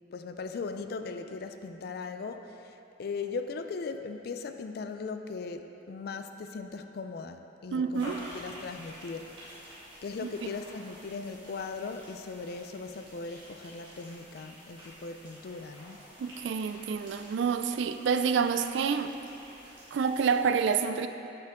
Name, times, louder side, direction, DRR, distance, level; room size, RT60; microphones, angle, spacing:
voice 1, 0.1-9.4 10.0-16.0, left 4 dB, 55° left, 8 dB, 0.4 m, -39 dB
voice 2, 7.7-8.2 10.2-10.5 16.2-19.1 19.9-21.1, right 6 dB, 70° right, 9 dB, 0.3 m, -28 dB
sound 1, 7.9-20.5, equal, 25° right, 1.8 m, -50 dB
7.7 x 6.5 x 3.6 m, 2.9 s
head